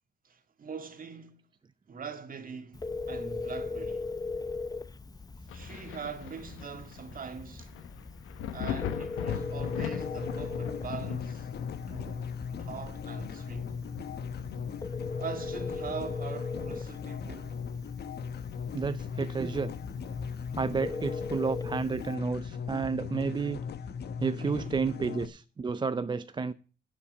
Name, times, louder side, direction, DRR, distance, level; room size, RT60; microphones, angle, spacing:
voice 1, 0.2-1.4 1.9-4.1 5.5-7.7 8.5-11.5 11.9-13.8 15.2-17.6 24.4-24.8, right 6 dB, 45° right, 2.0 m, -42 dB
Telephone, 2.7-22.1, left 3 dB, 20° left, 0.8 m, -40 dB
Thunder, 5.5-16.8 17.2-18.7 19.1-19.2 19.8-21.0 22.5-22.6, left 10 dB, 90° left, 1.1 m, -42 dB
sound 1, 9.3-25.3, left 6 dB, 55° left, 1.1 m, -38 dB
voice 2, 18.7-19.7 20.5-23.6 24.2-26.5, right 5 dB, 25° right, 0.4 m, -31 dB
11.0 x 5.8 x 8.1 m
cardioid pair, 90°, 20 cm